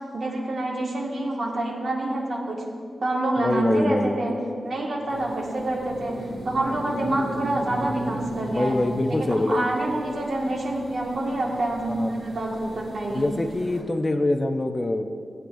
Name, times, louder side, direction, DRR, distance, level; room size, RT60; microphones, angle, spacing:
voice 1, 0.1-2.7 3.0-8.7 9.1-13.3, right 1 dB, 55° right, -2 dB, 1.7 m, -27 dB
voice 2, 3.4-4.4 8.5-9.6 11.9-12.3 13.1-15.0, left 2 dB, 20° left, 6 dB, 0.5 m, -24 dB
sound 1, 5.1-13.8, right 1 dB, 90° right, 1.8 m, -37 dB
18.0 x 8.6 x 2.6 m, 2.2 s
wide cardioid pair, 145°, 0 cm